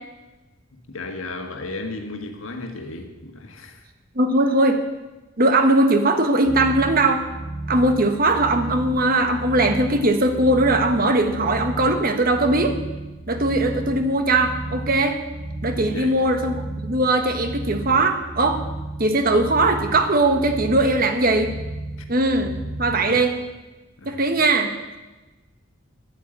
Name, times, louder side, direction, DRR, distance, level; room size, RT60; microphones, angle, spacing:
voice 1, 0.7-3.8 15.9-16.3 22.8-23.2 24.0-24.2, left 2 dB, 90° left, 1.6 m, -34 dB
voice 2, 4.1-4.8 5.4-7.2 7.7-12.8 13.3-15.2 15.6-18.6 19.0-21.5 22.1-23.3 24.0-24.7, right 2 dB, 45° right, 1.4 m, -20 dB
sound 1, 6.4-23.1, right 2 dB, 90° right, 3.1 m, -33 dB
10.5 x 9.1 x 8.8 m
head